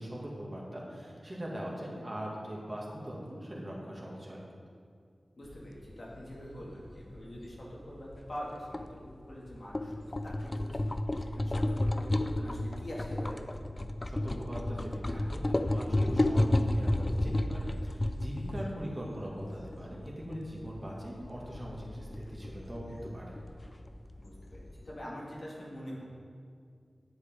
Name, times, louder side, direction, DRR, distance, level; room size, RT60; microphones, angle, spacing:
voice 1, 0.0-4.4 14.1-23.4, equal, 30° right, -4 dB, 2.2 m, -41 dB
voice 2, 5.4-13.4 24.2-26.0, equal, 65° left, -5 dB, 2.3 m, -44 dB
sound 1, 5.5-25.0, left 1 dB, 35° left, 0.5 m, -33 dB
9.9 x 7.9 x 3.8 m, 2.2 s
cardioid pair, 45°, 0 cm